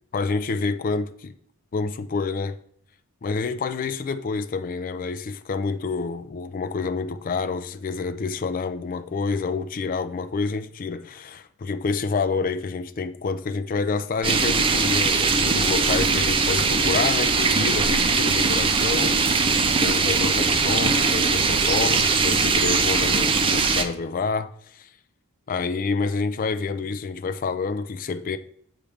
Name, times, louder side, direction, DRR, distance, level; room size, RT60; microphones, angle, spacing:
voice 1, 0.1-1.3 1.7-2.6 3.2-24.9 25.5-28.4, left 4 dB, 40° left, 0.4 m, -28 dB
sound 1, 14.2-23.8, right 4 dB, 25° right, 0.4 m, -21 dB
7.0 x 5.0 x 3.4 m
head